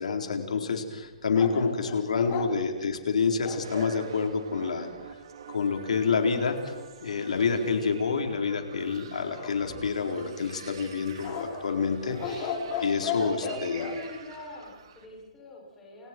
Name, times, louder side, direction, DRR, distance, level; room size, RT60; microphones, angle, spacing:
voice 1, 0.0-4.9 5.5-6.7 7.0-13.8, left 5 dB, 85° left, 4 dB, 4.1 m, -28 dB
sound 1, 1.3-4.0 9.3-10.2 11.2-14.0, left 5 dB, 25° left, 2.9 m, -35 dB
sound 2, 3.6-15.1, right 7 dB, 45° right, 3.5 m, -47 dB
voice 2, 13.4-16.1, left 2 dB, 10° left, -4 dB, 6.9 m, -42 dB
29.0 x 29.0 x 4.6 m, 1.2 s
hypercardioid pair, 175°, 4 cm